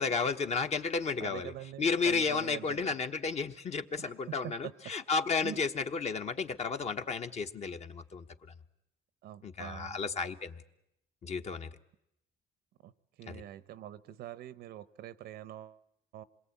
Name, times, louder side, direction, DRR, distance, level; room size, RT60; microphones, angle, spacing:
voice 1, 0.0-1.5 1.8-8.2 9.4-10.6 11.2-11.7 13.3-13.4, left 5 dB, 40° left, 7 dB, 1.3 m, -32 dB
voice 2, 1.2-2.9 4.0-4.7 5.4-5.6 9.2-10.0 12.8-12.9 13.2-15.8 16.1-16.2, right 12 dB, 75° right, 17 dB, 0.9 m, -44 dB
27.0 x 21.5 x 8.5 m, 0.81 s
cardioid pair, 110°, 17 cm